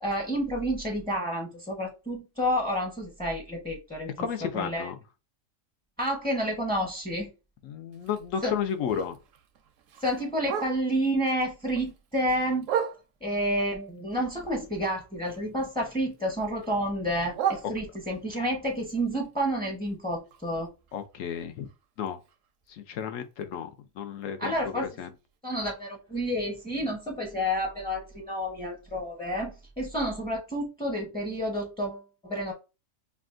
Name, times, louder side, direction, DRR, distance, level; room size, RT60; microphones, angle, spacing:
voice 1, 0.0-4.3 4.5-4.9 6.0-7.3 8.4-8.5 10.0-12.7 13.2-20.7 24.4-24.9 25.4-32.5, equal, 5° left, 0.5 m, -30 dB
voice 2, 4.2-4.9 7.6-9.2 20.9-21.7 22.0-22.2 22.7-23.7 24.0-25.1, left 8 dB, 80° left, 1.0 m, -32 dB
Bark, 7.9-11.1 11.5-13.4 13.9-15.7 16.0-18.3 18.8-22.7 23.0-23.1 23.4-23.8 24.2-24.3 24.7-24.8 25.3-25.4, right 9 dB, 80° right, 1.0 m, -37 dB
5.8 x 2.4 x 2.4 m
omnidirectional pair, 1.4 m